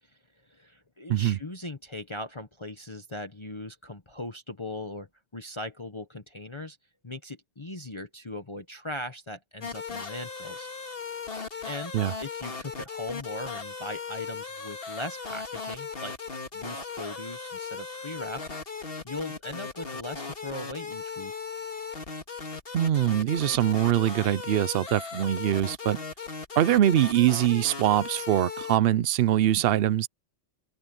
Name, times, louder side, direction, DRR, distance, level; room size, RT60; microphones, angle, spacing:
voice 1, 0.1-6.8 7.0-10.7 11.6-11.9 12.2-16.1 16.5-18.4 19.0-21.3, left 1 dB, 25° left, 1.1 m, -39 dB
sound 1, 9.6-28.8, left 5 dB, 50° left, 2.2 m, -37 dB
voice 2, 22.7-26.0 26.6-30.1, right 12 dB, 60° right, 0.7 m, -23 dB
omnidirectional pair, 1.2 m